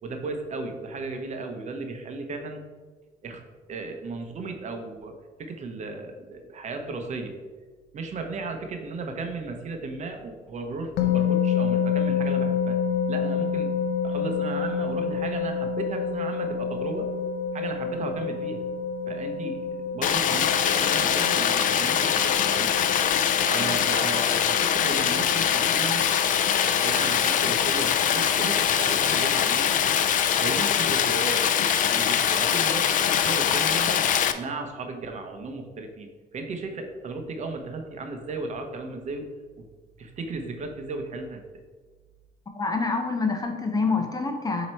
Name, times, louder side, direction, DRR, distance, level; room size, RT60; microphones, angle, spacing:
voice 1, 0.0-2.6 3.2-3.4 3.7-7.3 7.9-12.8 13.1-13.7 14.0-17.1 17.5-18.6 19.1-22.7 23.4-26.1 26.5-29.7 30.4-31.5 31.9-39.3 39.6-39.7 40.0-41.6, right 3 dB, 45° right, 5 dB, 0.8 m, -35 dB
sound 1, 11.0-30.3, left 6 dB, 85° left, 0.7 m, -29 dB
Stream, 20.0-34.3, left 9 dB, 50° left, 0.4 m, -23 dB
voice 2, 42.5-44.7, left 4 dB, 20° left, 4 dB, 0.8 m, -26 dB
7.4 x 3.0 x 4.4 m, 1.4 s
cardioid pair, 110°, 17 cm